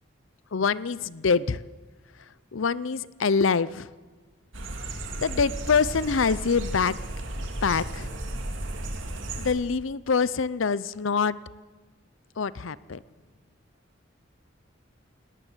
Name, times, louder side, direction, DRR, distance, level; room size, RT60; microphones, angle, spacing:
voice 1, 0.5-1.6 2.5-3.9 5.2-7.0 7.6-8.1 9.4-11.3 12.4-13.0, left 5 dB, 80° left, 18 dB, 0.6 m, -25 dB
sound 1, 4.5-9.5, right 1 dB, 75° right, 2.6 m, -34 dB
19.0 x 18.5 x 8.0 m, 1.3 s
head